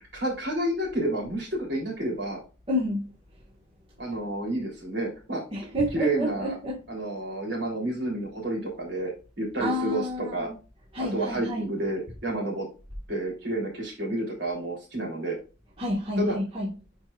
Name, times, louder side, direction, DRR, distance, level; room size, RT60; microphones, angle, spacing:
voice 1, 0.1-2.4 4.0-5.4 5.9-6.6 6.9-10.5 11.0-12.7 13.1-15.4 16.2-16.3, right 1 dB, 60° right, 3.5 m, -30 dB
voice 2, 2.7-3.0 5.5-6.8 9.6-10.5 10.9-11.6 15.8-16.7, left 1 dB, 30° right, 1.6 m, -29 dB
8.4 x 4.7 x 2.5 m
head